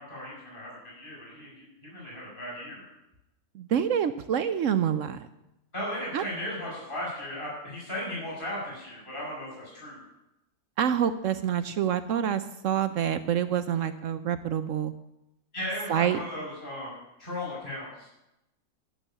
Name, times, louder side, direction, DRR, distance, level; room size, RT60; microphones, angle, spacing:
voice 1, 0.0-1.6 1.9-2.8 5.7-10.0 15.5-18.1, left 1 dB, 30° left, -6 dB, 5.4 m, -36 dB
voice 2, 3.5-5.3 6.1-6.2 10.8-14.9 15.9-16.2, right 9 dB, 65° right, 11 dB, 0.8 m, -27 dB
11.0 x 6.2 x 8.8 m, 0.90 s
omnidirectional pair, 1.7 m